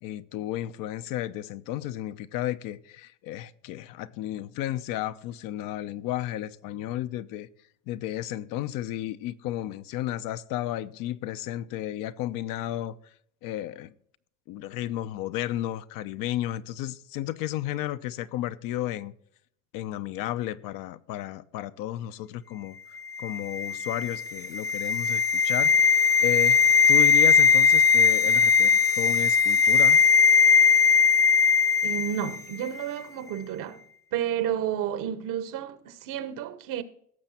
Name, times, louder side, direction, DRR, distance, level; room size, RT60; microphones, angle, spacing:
voice 1, 0.0-7.5 7.9-13.0 13.4-13.9 14.5-19.1 19.7-22.8 23.2-30.0, left 13 dB, 65° left, 0.8 m, -33 dB
sound 1, 23.1-32.4 32.7-32.8, left 6 dB, 10° left, 0.6 m, -20 dB
voice 2, 31.8-33.8 34.1-36.8, right 10 dB, 65° right, 1.3 m, -31 dB
17.0 x 6.9 x 4.3 m
supercardioid pair, 90°, 36 cm